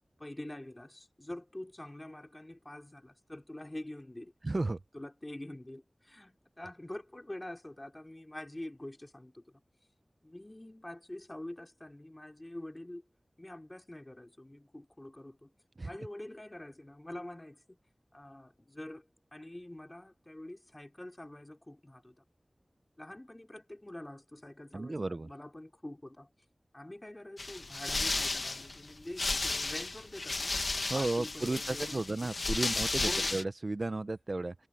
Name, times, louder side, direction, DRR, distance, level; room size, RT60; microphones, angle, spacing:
voice 1, 0.2-4.3 4.9-5.8 6.1-9.4 10.2-13.0 13.4-15.5 15.8-17.8 18.1-19.0 19.3-22.1 23.0-26.3 26.7-30.6 30.9-32.5 32.7-33.4, left 1 dB, 25° left, 5.0 m, -46 dB
voice 2, 4.4-4.8 15.8-15.9 24.7-25.3 30.9-34.5, right 2 dB, 55° right, 0.8 m, -33 dB
sound 1, 27.4-33.4, left 3 dB, 70° left, 1.8 m, -34 dB
wide cardioid pair, 55°, 0 cm